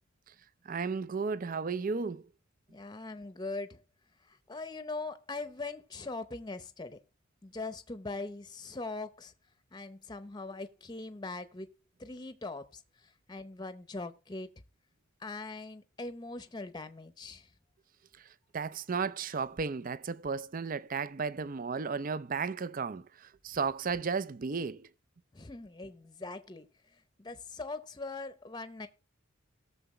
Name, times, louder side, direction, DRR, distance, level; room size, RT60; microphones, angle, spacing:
voice 1, 0.7-2.2 18.5-24.9, right 5 dB, 40° right, 0.5 m, -34 dB
voice 2, 2.7-3.8 4.2-7.0 7.4-9.3 9.7-11.7 12.0-14.5 15.2-17.5 25.3-28.9, left 3 dB, 20° left, 0.7 m, -41 dB
18.5 x 6.9 x 3.2 m
head